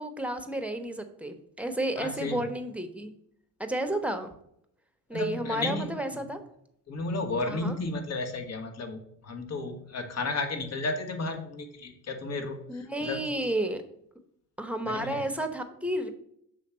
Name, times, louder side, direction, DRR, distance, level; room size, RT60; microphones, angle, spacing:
voice 1, 0.0-3.1 3.6-4.3 5.1-6.4 7.4-7.8 12.7-13.8 14.6-16.1, right 1 dB, 5° right, 6 dB, 0.9 m, -32 dB
voice 2, 2.0-2.4 5.1-6.0 6.9-13.2 14.8-15.2, left 3 dB, 50° left, 6 dB, 1.3 m, -33 dB
6.6 x 3.5 x 5.6 m, 0.72 s
cardioid pair, 85°, 34 cm